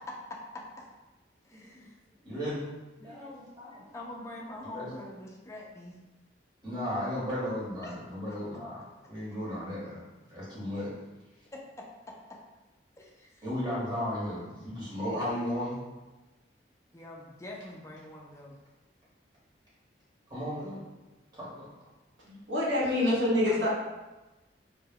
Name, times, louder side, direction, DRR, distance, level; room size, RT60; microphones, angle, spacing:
voice 1, 0.0-0.6 1.5-2.0 3.0-3.3 3.9-6.0 7.8-8.0 8.3-8.4 11.5-11.6 13.0-13.4 16.9-18.5 23.5-23.7, left 2 dB, 15° left, -2 dB, 0.3 m, -44 dB
voice 2, 2.2-2.6 3.0-3.9 4.7-4.9 6.6-10.0 10.3-10.9 13.4-15.8 20.3-20.8 21.3-21.7 22.2-22.4, equal, 25° right, -9 dB, 1.0 m, -35 dB
voice 3, 22.5-23.7, left 1 dB, 75° right, -7 dB, 0.9 m, -25 dB
2.1 x 2.1 x 3.4 m, 1.1 s
head